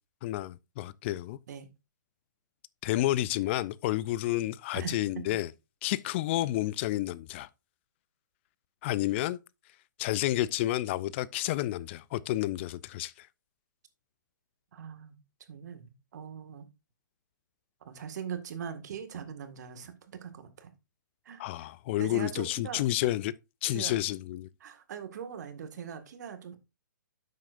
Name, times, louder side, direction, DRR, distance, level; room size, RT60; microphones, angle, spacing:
voice 1, 0.2-1.4 2.8-5.5 5.8-7.5 8.8-9.4 10.0-13.3 21.4-23.3 23.6-24.5, left 15 dB, 35° left, 0.4 m, -30 dB
voice 2, 14.7-15.2 15.5-16.7 17.8-20.7 21.3-21.7 22.0-22.8 23.7-23.9 24.6-26.6, right 7 dB, 55° right, 1.8 m, -41 dB
10.5 x 7.6 x 2.5 m
hypercardioid pair, 130°, 11 cm